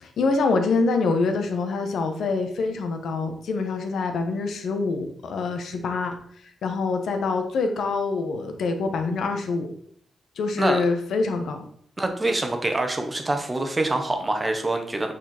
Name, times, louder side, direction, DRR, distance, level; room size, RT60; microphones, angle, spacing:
voice 1, 0.0-6.2 6.6-9.7 10.4-11.6, left 4 dB, 75° left, 6 dB, 1.3 m, -25 dB
voice 2, 12.0-15.1, right 2 dB, 15° right, 5 dB, 1.1 m, -25 dB
8.8 x 4.5 x 4.4 m, 0.63 s
wide cardioid pair, 170°, 0 cm